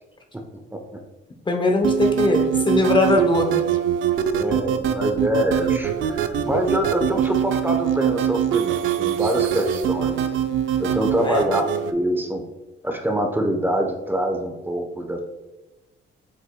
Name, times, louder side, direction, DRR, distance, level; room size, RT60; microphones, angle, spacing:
voice 1, 1.5-3.6 11.2-11.5, left 2 dB, 25° left, 3 dB, 0.8 m, -20 dB
sound 1, 1.8-11.9, right 10 dB, 80° right, 0.6 m, -23 dB
voice 2, 4.3-10.2 10.8-12.4 12.8-15.2, right 1 dB, 10° right, 3 dB, 0.9 m, -25 dB
8.0 x 5.4 x 2.2 m, 1.1 s
cardioid pair, 90°, 20 cm